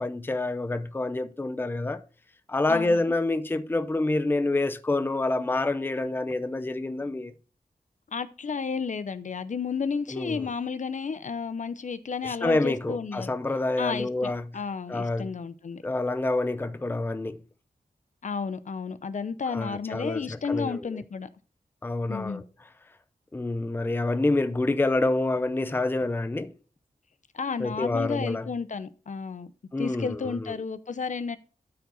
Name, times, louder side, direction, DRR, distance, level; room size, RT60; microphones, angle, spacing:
voice 1, 0.0-2.0 2.5-7.3 10.1-10.5 12.2-14.5 14.9-15.3 15.8-17.4 19.5-21.0 21.8-22.4 23.3-26.5 27.6-28.5 29.7-30.5, left 2 dB, 15° left, 0.5 m, -27 dB
voice 2, 2.7-3.0 8.1-13.3 13.8-15.8 18.2-21.3 22.1-22.4 27.3-29.5 29.8-31.4, left 5 dB, 55° left, 0.7 m, -32 dB
13.0 x 4.8 x 3.9 m
wide cardioid pair, 95°, 15 cm